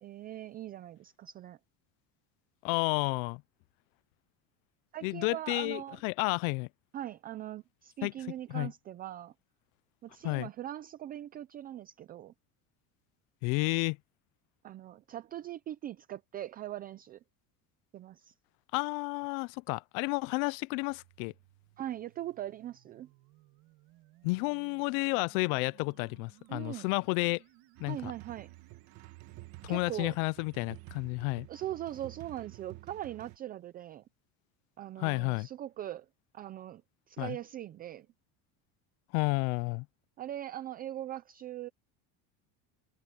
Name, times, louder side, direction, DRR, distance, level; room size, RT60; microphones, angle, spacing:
voice 1, 0.0-1.6 4.9-6.0 6.9-9.3 10.0-12.3 14.6-17.2 17.9-18.3 21.8-23.1 26.5-26.9 27.9-28.5 29.7-30.1 31.5-34.0 34.8-36.1 36.3-36.8 37.1-38.1 40.2-41.7, right 12 dB, 25° right, 0.4 m, -41 dB
voice 2, 2.6-3.4 5.0-6.7 8.0-8.1 8.5-8.7 10.2-10.5 13.4-14.0 18.7-21.3 24.2-27.4 27.8-28.1 29.6-31.5 35.0-35.5 37.2-37.4 39.1-39.9, left 28 dB, 90° left, 0.6 m, -31 dB
sound 1, 20.9-30.9, right 18 dB, 60° right, 2.8 m, -63 dB
sound 2, 27.8-33.4, right 19 dB, 45° right, 1.4 m, -50 dB
cardioid pair, 170°, 40 cm